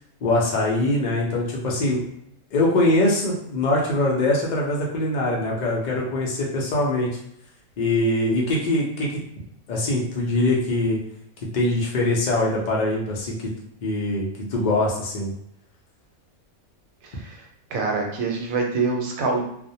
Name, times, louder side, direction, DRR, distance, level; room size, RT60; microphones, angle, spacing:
voice 1, 0.2-2.0 2.5-7.2 7.8-9.1 9.7-11.0 11.5-13.5 13.8-15.3, left 1 dB, 70° left, -2 dB, 0.4 m, -23 dB
voice 2, 17.0-17.4 17.7-19.4, right 4 dB, 80° right, 1 dB, 1.0 m, -25 dB
2.3 x 2.1 x 2.7 m, 0.73 s
omnidirectional pair, 1.5 m